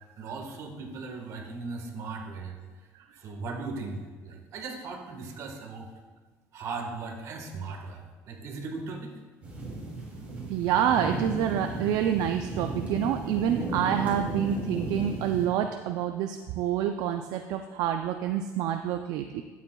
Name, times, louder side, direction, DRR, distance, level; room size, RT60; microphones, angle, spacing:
voice 1, 0.2-2.6 3.2-5.9 6.5-8.0 8.3-9.1, right 4 dB, 55° right, 2 dB, 1.5 m, -38 dB
sound 1, 9.4-15.5, right 2 dB, 20° right, 2.8 m, -35 dB
voice 2, 10.5-19.4, right 9 dB, 75° right, 6 dB, 0.4 m, -27 dB
12.0 x 8.3 x 2.3 m, 1.4 s
cardioid pair, 130°, 6 cm